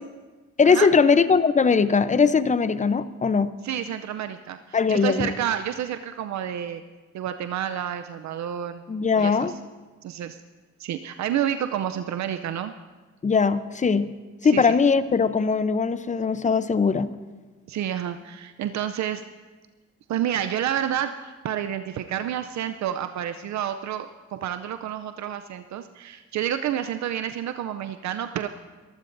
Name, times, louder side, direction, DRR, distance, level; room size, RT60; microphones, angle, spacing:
voice 1, 0.6-3.5 4.7-5.3 8.9-9.5 13.2-14.1 14.4-17.1, left 5 dB, 25° left, 13 dB, 0.7 m, -20 dB
voice 2, 3.6-6.8 7.1-8.8 9.2-9.5 10.0-10.4 10.8-12.7 14.4-14.8 17.7-19.2 20.1-28.5, right 10 dB, 65° right, 9 dB, 0.6 m, -29 dB
23.5 x 14.5 x 2.6 m, 1.3 s
cardioid pair, 90°, 30 cm